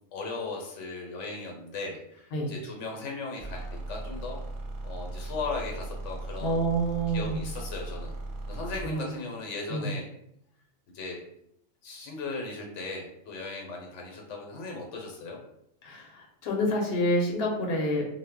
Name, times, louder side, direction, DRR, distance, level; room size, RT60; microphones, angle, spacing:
voice 1, 0.1-4.4 4.8-6.7 7.1-8.1 8.5-10.1 10.9-11.2 11.8-15.4, left 3 dB, 85° left, 0 dB, 1.0 m, -37 dB
sound 1, 3.4-8.9, right 2 dB, 65° right, 0.7 m, -37 dB
voice 2, 6.4-7.4 8.8-9.0 9.7-9.9 15.8-18.1, equal, 60° left, 0 dB, 0.8 m, -28 dB
2.0 x 2.0 x 3.5 m, 0.75 s
omnidirectional pair, 1.2 m